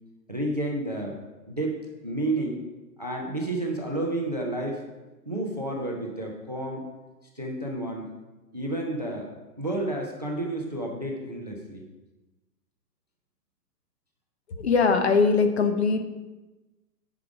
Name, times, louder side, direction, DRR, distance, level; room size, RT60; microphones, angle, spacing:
voice 1, 0.3-1.2 1.5-1.8 2.0-2.6 3.0-4.8 5.3-6.9 7.3-8.1 8.5-11.8, right 1 dB, 25° right, 1 dB, 0.4 m, -30 dB
voice 2, 14.5-16.0, left 4 dB, 40° left, 7 dB, 0.7 m, -21 dB
9.9 x 4.9 x 4.9 m, 1.1 s
hypercardioid pair, 175°, 49 cm